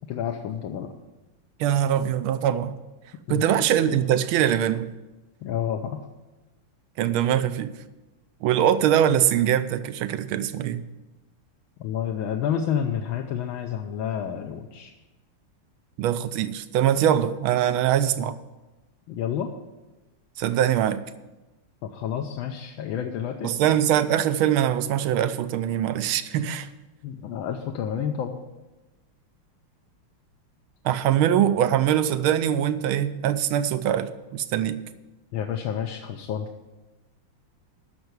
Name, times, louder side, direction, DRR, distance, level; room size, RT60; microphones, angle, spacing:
voice 1, 0.1-0.9 3.3-3.4 5.4-6.0 11.8-14.9 19.1-19.5 21.8-23.5 27.0-28.4 35.3-36.5, left 9 dB, 70° left, 3 dB, 1.4 m, -29 dB
voice 2, 1.6-2.7 3.3-4.9 7.0-7.7 8.4-10.8 16.0-18.3 20.4-21.0 23.4-26.7 30.8-34.8, right 10 dB, 75° right, 13 dB, 1.4 m, -22 dB
10.5 x 6.5 x 8.0 m, 1.1 s
omnidirectional pair, 2.4 m